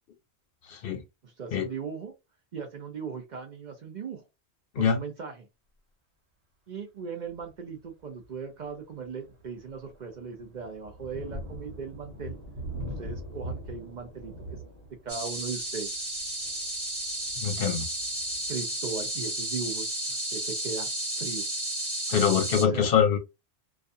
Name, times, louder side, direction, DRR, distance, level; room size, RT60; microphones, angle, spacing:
voice 1, 0.7-1.0 1.5-1.7 4.8-5.0 17.4-17.9 22.1-23.2, left 7 dB, 65° left, 0.7 m, -24 dB
voice 2, 1.2-2.1 2.5-4.2 4.8-5.5 6.7-12.4 13.0-14.6 15.0-16.1 18.5-20.9 21.2-21.5 22.6-22.9, right 5 dB, 55° right, 0.6 m, -38 dB
Thunder, 7.3-7.6 8.2-8.3 8.8-19.3, equal, 90° right, 1.2 m, -42 dB
sound 1, 15.1-22.6, right 1 dB, 15° right, 0.8 m, -33 dB
2.4 x 2.2 x 2.6 m
omnidirectional pair, 1.1 m